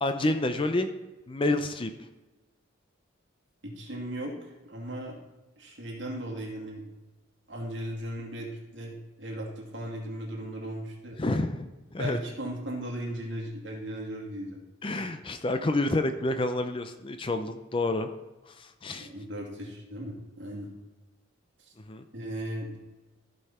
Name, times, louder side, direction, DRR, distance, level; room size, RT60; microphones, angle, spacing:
voice 1, 0.0-0.9 1.3-1.9 11.2-12.2 14.8-18.1 18.5-19.1 21.9-22.0, left 2 dB, 25° left, 8 dB, 0.5 m, -29 dB
voice 2, 3.6-5.2 5.6-6.9 7.5-11.2 12.0-14.6 19.0-20.7 21.7-21.8 22.1-22.8, right 1 dB, 60° right, -1 dB, 2.4 m, -37 dB
14.5 x 5.5 x 4.3 m, 1.1 s
head